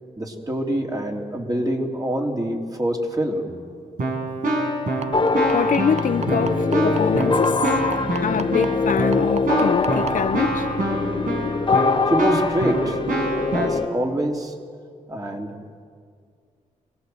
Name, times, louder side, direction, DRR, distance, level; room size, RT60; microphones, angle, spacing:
voice 1, 0.2-3.4 12.1-13.0 13.5-14.5 15.1-15.5, equal, 25° right, 3.2 m, -25 dB
Keyboard (musical), 3.5-3.6 4.0-13.7, right 1 dB, 80° right, 5.2 m, -26 dB
sound 1, 5.0-10.1 11.2-11.3 11.7-11.8 12.2-12.3, right 5 dB, 50° right, 0.9 m, -31 dB
sound 2, 5.1-13.9, left 4 dB, 35° left, 1.3 m, -23 dB
voice 2, 5.5-7.6 8.2-10.7, left 7 dB, 70° left, 0.7 m, -25 dB
26.5 x 19.0 x 7.8 m
cardioid pair, 75°, 14 cm